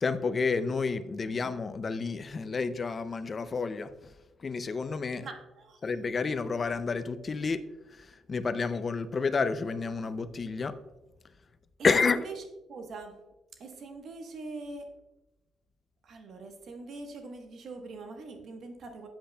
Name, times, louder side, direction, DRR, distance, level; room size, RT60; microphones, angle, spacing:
voice 1, 0.0-3.9 4.4-5.3 5.8-7.6 7.9-10.7 11.8-12.2, left 4 dB, 40° left, 12 dB, 0.4 m, -30 dB
voice 2, 5.2-5.8 12.0-13.2 13.6-14.9 16.0-19.1, right 3 dB, 60° right, 5 dB, 1.2 m, -43 dB
8.5 x 7.5 x 2.3 m, 1.0 s
cardioid pair, 90°, 0 cm